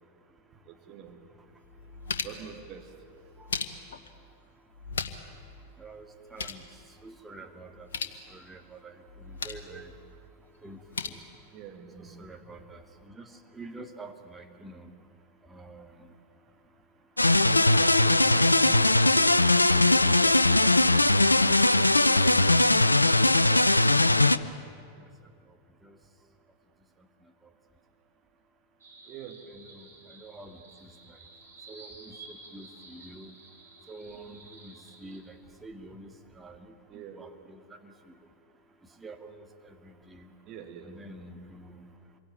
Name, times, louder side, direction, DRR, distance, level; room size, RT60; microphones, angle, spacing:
voice 1, 0.7-1.2 2.2-2.9 11.5-12.3 29.1-29.4 36.9-37.2 40.5-40.9, right 9 dB, 35° right, 3 dB, 3.0 m, -45 dB
sound 1, 1.1-1.2 1.6-2.5 3.2-4.1 4.7-5.4 5.6-5.7 6.1-6.7 7.7-8.2 9.1-9.7 10.6-11.1, left 5 dB, 65° left, 1.4 m, -37 dB
voice 2, 5.8-6.6 7.0-7.9 8.3-9.9 10.6-11.2 12.0-14.9 15.5-16.1 17.2-17.5 17.8-21.9 22.2-22.8 23.5-23.7 24.0-24.4 24.9-25.1 25.8-26.0 29.5-31.2 31.7-33.3 33.9-37.9 39.0-40.3 40.8-41.8, right 2 dB, 10° right, 4 dB, 2.3 m, -48 dB
sound 2, 17.2-24.4, left 2 dB, 85° left, 0.6 m, -20 dB
sound 3, 28.8-35.2, right 3 dB, 70° right, 5.4 m, -52 dB
26.5 x 23.0 x 9.3 m, 2.4 s
figure-of-eight pair, 90°, 0 cm